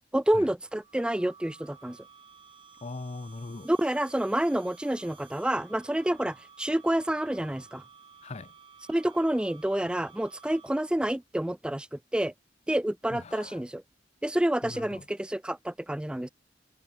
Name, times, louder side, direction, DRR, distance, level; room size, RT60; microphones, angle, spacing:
voice 1, 0.1-2.0 3.6-7.8 8.9-12.3 12.7-13.8 14.2-16.3, right 1 dB, 5° right, 0.3 m, -28 dB
sound 1, 0.7-11.0, right 6 dB, 30° right, 1.2 m, -54 dB
voice 2, 2.8-3.7 8.2-8.5 13.1-13.6 14.6-15.1, left 3 dB, 40° left, 0.6 m, -40 dB
head